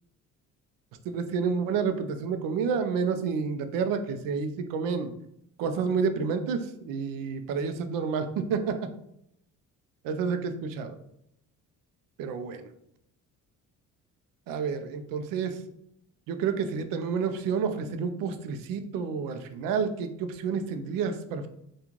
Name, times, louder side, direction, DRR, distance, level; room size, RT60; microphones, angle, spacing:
voice 1, 1.1-5.1 5.6-8.7 10.0-11.0 12.2-12.6 14.5-15.6 16.3-21.5, right 5 dB, 80° right, 8 dB, 0.5 m, -29 dB
3.7 x 2.3 x 3.0 m, 0.77 s
cardioid pair, 120°, 33 cm